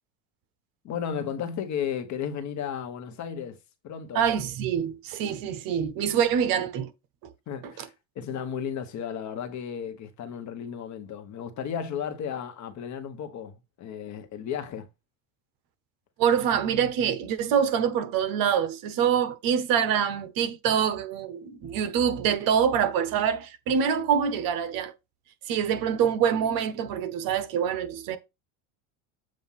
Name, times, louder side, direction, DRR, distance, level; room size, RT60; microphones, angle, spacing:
voice 1, 0.8-3.6 3.8-4.2 7.5-14.9, left 8 dB, 45° left, 1.2 m, -34 dB
voice 2, 4.1-6.9 7.2-7.3 7.6-7.9 16.2-24.9 25.5-28.2, right 8 dB, 55° right, 1.0 m, -25 dB
7.6 x 2.6 x 5.7 m
supercardioid pair, 125°, 40 cm